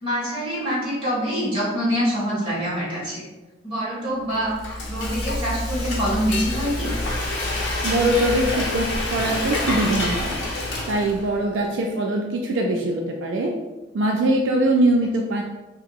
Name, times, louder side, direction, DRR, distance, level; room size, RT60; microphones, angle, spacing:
voice 1, 0.0-3.3 3.6-6.9, equal, 30° right, -8 dB, 1.3 m, -25 dB
Frying (food), 4.3-11.4, left 2 dB, 85° left, 0.6 m, -27 dB
voice 2, 7.8-10.3 10.9-13.5 13.9-15.4, right 1 dB, 80° right, 1 dB, 0.3 m, -22 dB
2.8 x 2.8 x 2.3 m, 1.1 s
head